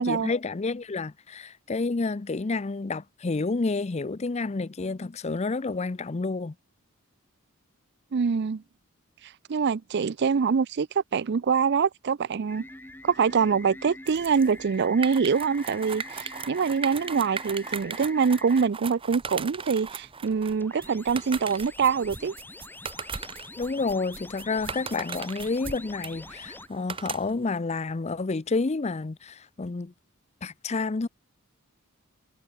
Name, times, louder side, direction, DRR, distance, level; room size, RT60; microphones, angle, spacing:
voice 1, 0.0-6.5 23.6-29.9 30.4-31.1, left 3 dB, 30° left, 0.5 m, -29 dB
voice 2, 8.1-8.6 9.5-10.9 11.1-12.6 13.0-22.3, right 6 dB, 50° right, 0.4 m, -24 dB
sound 1, 12.5-18.7 20.2-26.7, left 2 dB, 10° left, 1.4 m, -45 dB
sound 2, 14.1-27.5, right 5 dB, 25° right, 1.0 m, -38 dB
head